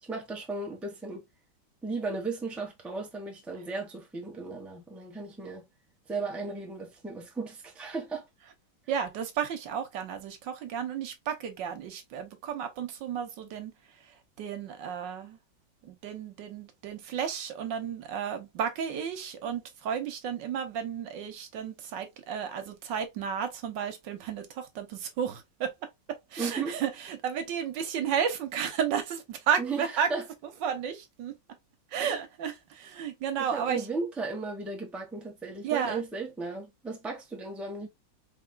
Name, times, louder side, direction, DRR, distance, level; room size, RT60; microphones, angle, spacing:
voice 1, 0.0-1.2 1.8-5.7 6.1-8.3 26.4-26.8 29.6-30.2 32.0-32.1 33.4-37.9, right 3 dB, ahead, 0.9 m, -35 dB
voice 2, 8.9-13.7 14.1-15.4 15.8-25.7 26.1-30.1 30.4-31.3 31.9-33.9 35.6-36.0, right 8 dB, 80° right, 1.5 m, -33 dB
4.8 x 3.4 x 2.2 m
omnidirectional pair, 2.0 m